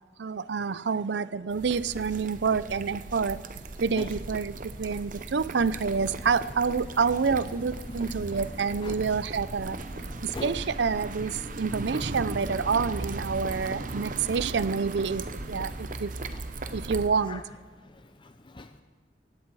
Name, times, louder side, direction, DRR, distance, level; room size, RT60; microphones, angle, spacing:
voice 1, 0.2-3.4 3.8-9.8 10.2-16.1 16.7-17.4, right 5 dB, 80° right, 0.5 m, -28 dB
sound 1, 1.5-17.1, right 2 dB, 50° right, 0.9 m, -38 dB
sound 2, 5.3-15.7, equal, 45° left, 2.7 m, -45 dB
voice 2, 13.9-14.3 15.7-16.0 16.3-16.8 17.3-17.4 17.8-18.8, left 2 dB, 30° left, 0.6 m, -43 dB
18.5 x 16.0 x 4.7 m
head